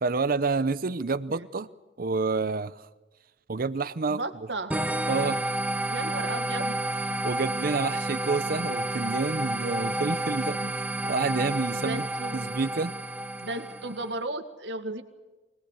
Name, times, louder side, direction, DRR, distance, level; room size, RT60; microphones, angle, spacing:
voice 1, 0.0-1.7 2.0-2.8 3.5-4.2 5.1-5.4 7.2-12.1 12.3-12.9, right 4 dB, 55° right, 0.7 m, -28 dB
voice 2, 4.1-4.7 5.9-6.8 10.6-10.7 11.7-12.5 13.4-15.0, right 2 dB, 80° right, 1.9 m, -34 dB
sound 1, 4.7-14.1, right 1 dB, 10° right, 0.8 m, -30 dB
24.5 x 19.0 x 8.3 m
head